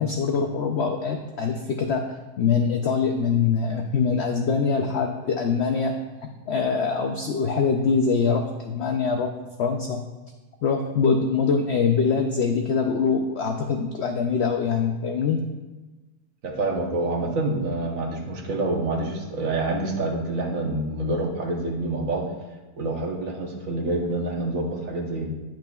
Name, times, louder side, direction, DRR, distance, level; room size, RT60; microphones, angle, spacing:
voice 1, 0.0-2.1 2.4-6.0 6.5-9.3 9.6-10.0 10.6-15.4, left 5 dB, 90° left, 4 dB, 0.5 m, -23 dB
voice 2, 16.4-22.2 22.8-25.3, right 2 dB, 60° right, 0 dB, 1.3 m, -27 dB
10.0 x 5.9 x 2.3 m, 1.2 s
omnidirectional pair, 1.7 m